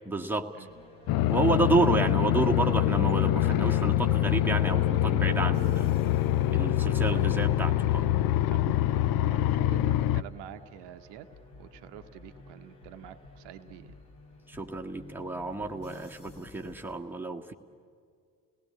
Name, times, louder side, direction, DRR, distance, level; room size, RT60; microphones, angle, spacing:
voice 1, 0.0-0.5 1.3-5.8 6.5-8.1 14.5-17.5, right 2 dB, 5° right, 1 dB, 1.5 m, -30 dB
sound 1, 0.6-17.0, left 2 dB, 70° left, 2.9 m, -53 dB
Police Helicopter Over London, 1.1-10.2, left 13 dB, 50° left, 0.5 m, -25 dB
sound 2, 3.8-10.3, right 10 dB, 30° left, 2.5 m, -60 dB
voice 2, 6.5-7.2 8.5-11.3 11.6-14.0, right 11 dB, 60° right, 9 dB, 0.9 m, -47 dB
29.5 x 18.0 x 8.6 m, 2.2 s
figure-of-eight pair, 40°, 48 cm